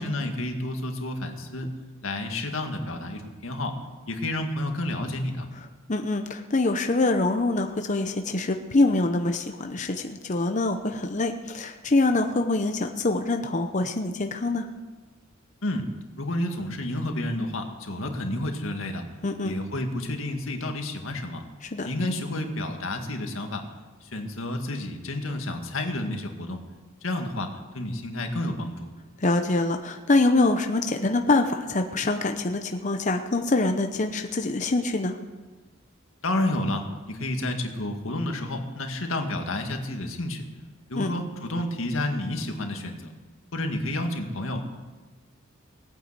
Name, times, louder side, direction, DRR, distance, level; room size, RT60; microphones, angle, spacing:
voice 1, 0.0-1.7 2.0-3.8 4.1-5.5 15.6-15.9 16.2-19.0 19.4-21.4 21.8-23.6 24.0-26.6 27.0-28.9 36.2-40.4 40.9-43.1 43.5-44.6, left 1 dB, 90° left, 4 dB, 2.0 m, -30 dB
voice 2, 5.9-14.7 19.2-19.5 21.6-21.9 29.2-35.2 40.9-41.1, left 2 dB, 35° left, 5 dB, 0.8 m, -25 dB
18.5 x 9.2 x 8.1 m, 1.3 s
head